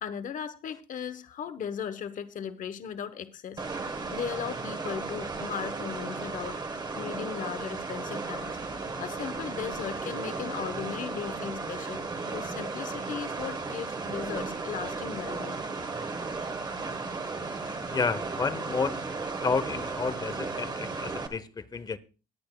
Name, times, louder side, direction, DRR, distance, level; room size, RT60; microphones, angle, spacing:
voice 1, 0.0-6.6 6.9-15.6, left 8 dB, 50° left, 1.0 m, -37 dB
sound 1, 3.6-21.3, right 4 dB, 25° right, 1.5 m, -35 dB
voice 2, 17.6-19.0 19.4-22.0, left 4 dB, 25° left, 0.8 m, -31 dB
20.5 x 8.7 x 2.3 m
cardioid pair, 110°, 17 cm